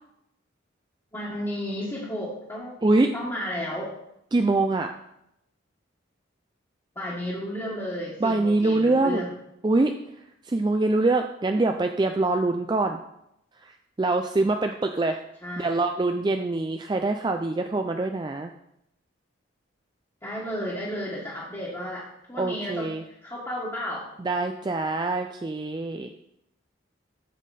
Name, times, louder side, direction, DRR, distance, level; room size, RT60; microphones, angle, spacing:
voice 1, 1.1-2.8 3.1-3.9 6.9-9.3 15.4-15.8 20.2-24.0, equal, 15° left, -7 dB, 1.6 m, -33 dB
voice 2, 2.8-3.1 4.3-4.9 8.2-9.3 9.6-9.9 10.5-13.0 13.6-15.2 15.6-18.5 22.4-23.0 24.2-26.1, right 2 dB, 20° right, 5 dB, 0.3 m, -24 dB
8.3 x 7.4 x 4.1 m, 0.80 s
head